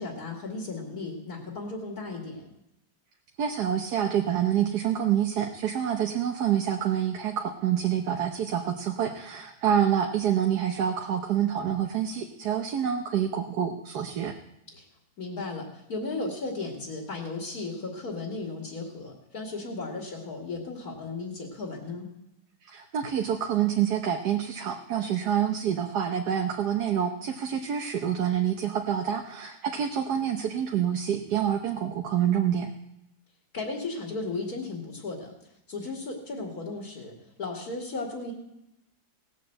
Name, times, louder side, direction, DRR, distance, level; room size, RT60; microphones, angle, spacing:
voice 1, 0.0-2.5 14.7-14.9 15.2-22.1 33.5-35.3 35.7-38.3, left 3 dB, 65° left, -1 dB, 2.9 m, -35 dB
voice 2, 3.4-14.3 22.6-32.7, right 9 dB, 75° right, 4 dB, 1.5 m, -27 dB
18.0 x 7.4 x 7.7 m, 0.85 s
omnidirectional pair, 1.7 m